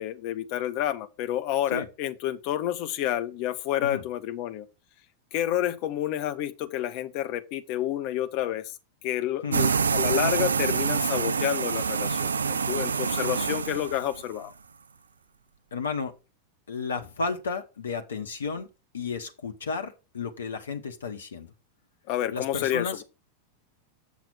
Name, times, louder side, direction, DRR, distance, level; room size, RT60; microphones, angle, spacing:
voice 1, 0.0-4.7 5.3-8.7 9.0-14.5 22.1-23.0, left 12 dB, 45° left, 0.8 m, -29 dB
sound 1, 9.5-14.3, right 5 dB, 75° right, 0.4 m, -26 dB
voice 2, 15.7-16.1 16.7-18.7 18.9-21.5 22.3-23.0, left 4 dB, 70° left, 1.0 m, -33 dB
8.2 x 6.0 x 4.1 m
figure-of-eight pair, 90°, 0 cm